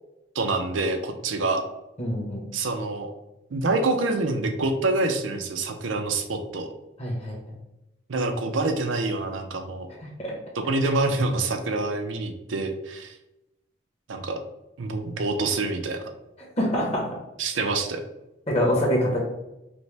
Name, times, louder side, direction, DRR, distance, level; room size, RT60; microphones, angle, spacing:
voice 1, 0.3-1.6 2.5-3.1 3.5-6.7 8.1-9.9 10.6-13.1 14.1-14.4 14.8-16.0 17.4-18.0, right 2 dB, 80° right, 6 dB, 0.6 m, -26 dB
voice 2, 2.0-2.4 7.0-7.4 10.2-10.3 16.6-17.0 18.5-19.2, equal, 35° left, -2 dB, 1.0 m, -24 dB
5.2 x 2.2 x 3.3 m, 0.93 s
head